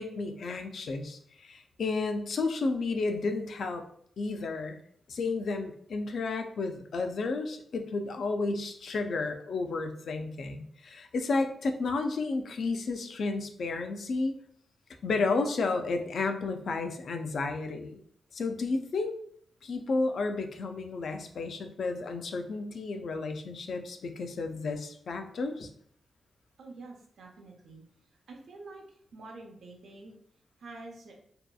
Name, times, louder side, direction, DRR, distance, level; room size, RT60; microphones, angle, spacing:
voice 1, 0.0-3.8 4.2-4.8 5.1-14.3 15.0-18.0 18.3-19.1 19.6-25.7, left 3 dB, 65° left, 6 dB, 0.3 m, -32 dB
voice 2, 26.6-30.1 30.6-31.1, right 3 dB, 80° right, 1 dB, 0.6 m, -48 dB
2.7 x 2.2 x 2.3 m, 0.63 s
cardioid pair, 90°, 0 cm